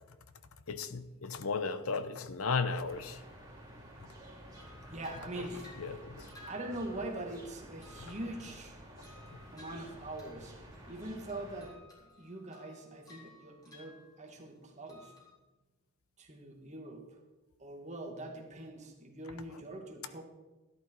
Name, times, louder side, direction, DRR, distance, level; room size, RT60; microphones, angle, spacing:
voice 1, 0.7-3.2 5.4-5.5 5.8-6.3 9.3-9.4, left 4 dB, 85° left, 0.9 m, -35 dB
sound 1, 2.9-11.7, right 1 dB, 15° right, 3.3 m, -51 dB
sound 2, 4.5-7.4 7.8-10.5 10.7-11.0 11.3-14.6 14.9-15.3, left 3 dB, 20° left, 3.9 m, -58 dB
voice 2, 4.9-5.8 6.5-8.8 9.5-15.1 16.2-17.2 17.6-20.2, right 1 dB, 35° right, 2.1 m, -43 dB
13.0 x 11.0 x 4.7 m
head